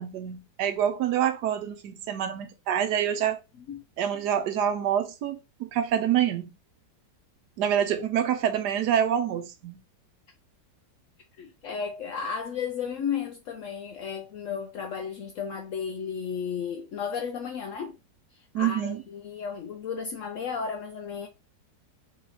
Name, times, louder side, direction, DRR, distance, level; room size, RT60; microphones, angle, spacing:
voice 1, 0.0-3.4 4.0-6.5 7.6-9.8 18.5-19.0, right 9 dB, 75° right, 1.1 m, -26 dB
voice 2, 11.4-18.0 18.3-21.3, left 6 dB, 80° left, 0.7 m, -34 dB
3.7 x 3.0 x 4.1 m
omnidirectional pair, 1.9 m